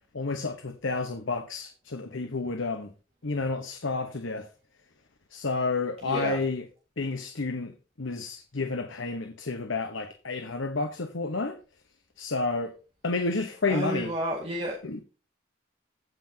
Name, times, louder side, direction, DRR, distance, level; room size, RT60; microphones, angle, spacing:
voice 1, 0.1-2.9 3.2-4.5 5.3-6.7 7.0-11.6 12.2-12.7 13.0-14.1 14.8-15.0, left 3 dB, 85° left, 1.1 m, -30 dB
voice 2, 6.0-6.4 13.7-14.8, right 1 dB, 30° right, 2.0 m, -31 dB
16.0 x 5.9 x 2.8 m
head